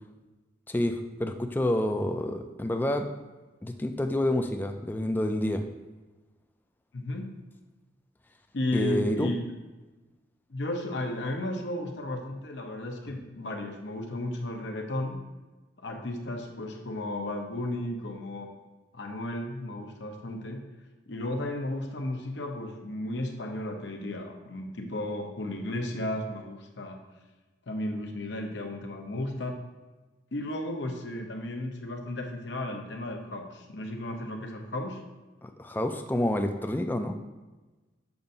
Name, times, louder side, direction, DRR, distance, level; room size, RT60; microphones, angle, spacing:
voice 1, 0.7-3.1 3.6-5.6 8.7-9.3 35.4-37.2, left 1 dB, 10° left, 6 dB, 0.3 m, -28 dB
voice 2, 6.9-7.3 8.5-9.4 10.5-15.2 15.8-18.5 18.9-20.7 21.1-27.0 27.7-29.6 30.3-35.0, left 1 dB, 70° left, 3 dB, 0.8 m, -34 dB
7.0 x 2.6 x 5.3 m, 1.2 s
head